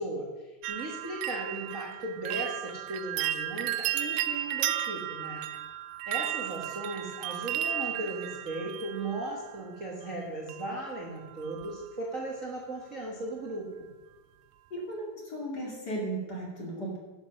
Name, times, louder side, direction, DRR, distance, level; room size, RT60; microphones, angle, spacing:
voice 1, 0.0-5.5 6.1-13.9, right 1 dB, 40° right, -2 dB, 1.1 m, -37 dB
sound 1, 0.6-9.6 10.5-11.0 11.3-11.8 12.2-12.3, right 12 dB, 90° right, 1.7 m, -34 dB
voice 2, 14.7-17.0, right 1 dB, 30° left, -2 dB, 2.7 m, -35 dB
11.0 x 7.9 x 6.2 m, 1.2 s
omnidirectional pair, 3.9 m